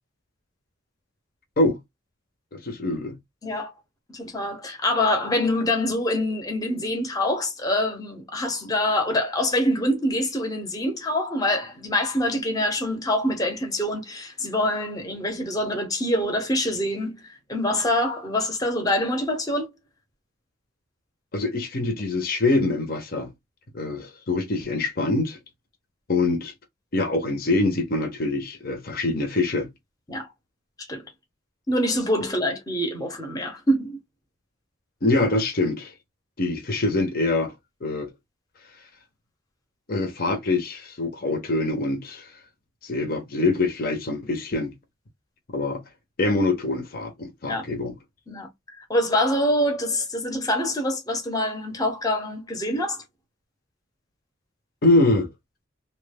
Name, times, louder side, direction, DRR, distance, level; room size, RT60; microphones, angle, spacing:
voice 1, 2.5-3.2 21.3-23.3 23.7-25.4 26.1-26.5 26.9-29.7 35.0-35.9 36.4-37.5 37.8-38.1 39.9-42.3 42.8-44.7 45.5-45.8 46.2-47.9 54.8-55.3, left 2 dB, 50° left, 0.7 m, -24 dB
voice 2, 4.1-19.7 30.1-30.3 30.9-31.0 31.7-34.0 47.5-47.6 48.3-48.5 48.9-53.0, left 1 dB, 20° left, 0.8 m, -25 dB
2.9 x 2.2 x 3.3 m
head